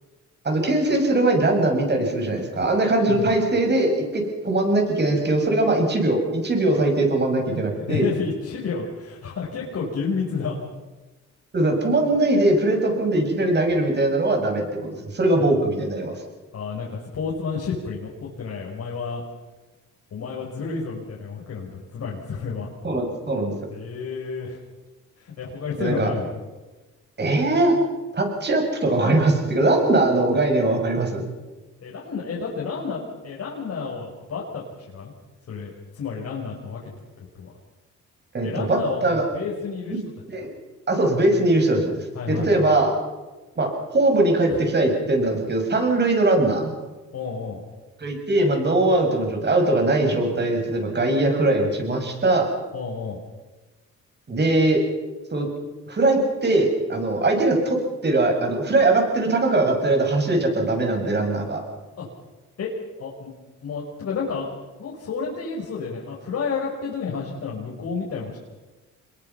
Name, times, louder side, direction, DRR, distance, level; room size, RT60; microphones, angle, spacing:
voice 1, 0.4-8.1 11.5-14.6 15.1-16.1 22.8-23.5 25.8-26.1 27.2-27.7 28.1-31.3 38.3-39.2 39.9-40.0 40.3-40.5 40.9-42.9 43.6-46.7 48.0-52.5 54.3-54.8 55.3-55.5 55.9-57.8 58.0-61.6, right 2 dB, 35° right, 3 dB, 7.2 m, -21 dB
voice 2, 3.1-3.4 7.9-10.6 16.5-19.2 20.1-22.7 23.7-24.6 25.2-26.4 31.8-35.1 35.5-37.5 38.4-40.0 42.1-42.8 44.5-44.6 47.1-47.6 52.7-53.2 62.0-62.1 62.6-62.7 63.0-63.3 63.6-64.5 64.8-68.4, left 5 dB, 55° left, -3 dB, 5.5 m, -30 dB
27.0 x 22.0 x 5.8 m, 1.2 s
cardioid pair, 90°, 30 cm